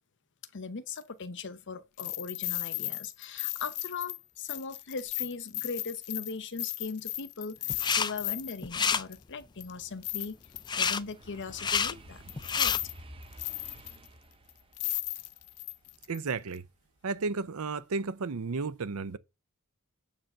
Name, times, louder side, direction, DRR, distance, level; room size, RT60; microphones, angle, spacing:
voice 1, 0.5-10.4 10.8-12.2 12.6-12.8, left 4 dB, 55° left, 0.8 m, -39 dB
sound 1, 0.9-1.0 2.0-8.6 9.1-9.2 9.6-10.9 11.7-11.8 12.3-12.9 13.2-14.1 14.5-14.6 14.8-16.2 16.5-16.6, left 20 dB, 90° left, 0.5 m, -36 dB
sound 2, 7.7-8.1 8.4-9.0 10.7-11.0 11.5-11.9 12.4-12.8, left 6 dB, 20° left, 0.4 m, -28 dB
sound 3, 7.7-7.8 8.3-17.3 17.7-18.1, right 1 dB, 25° right, 0.7 m, -53 dB
voice 2, 16.1-16.7 17.0-19.2, right 4 dB, 70° right, 0.6 m, -33 dB
7.3 x 4.9 x 6.5 m
head